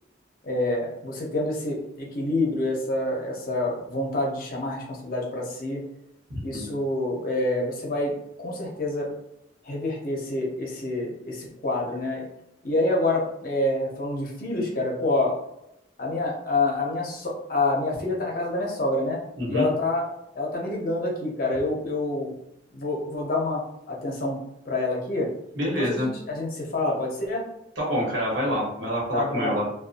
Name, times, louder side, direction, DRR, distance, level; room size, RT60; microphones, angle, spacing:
voice 1, 0.4-5.8 6.4-8.1 8.4-9.1 9.6-12.2 12.6-15.3 16.0-19.2 19.5-20.0 20.3-22.3 22.7-23.6 23.9-24.4 24.6-25.3 25.6-27.4 29.1-29.6, left 2 dB, 50° left, -2 dB, 0.7 m, -27 dB
voice 2, 6.3-6.7 19.4-19.7 25.6-26.1 27.8-29.6, equal, 85° right, -5 dB, 1.1 m, -27 dB
2.6 x 2.3 x 2.5 m, 0.82 s
head